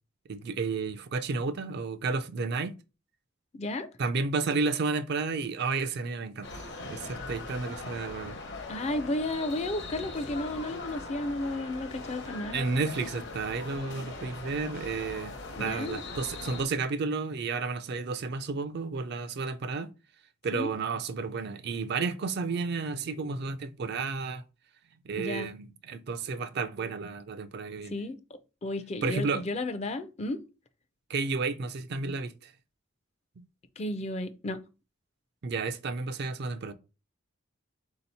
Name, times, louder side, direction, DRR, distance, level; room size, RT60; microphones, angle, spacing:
voice 1, 0.3-2.8 4.0-8.4 12.5-19.9 20.4-24.4 25.0-28.0 29.0-29.4 31.1-32.5 35.4-36.7, right 4 dB, 50° right, 0.4 m, -32 dB
voice 2, 3.5-3.9 8.7-12.6 15.6-16.0 20.5-20.7 25.2-25.5 27.9-28.2 28.6-30.4 33.8-34.6, left 2 dB, 30° left, 0.4 m, -33 dB
sound 1, 6.4-16.6, left 3 dB, 55° left, 0.8 m, -40 dB
3.8 x 2.8 x 4.1 m
head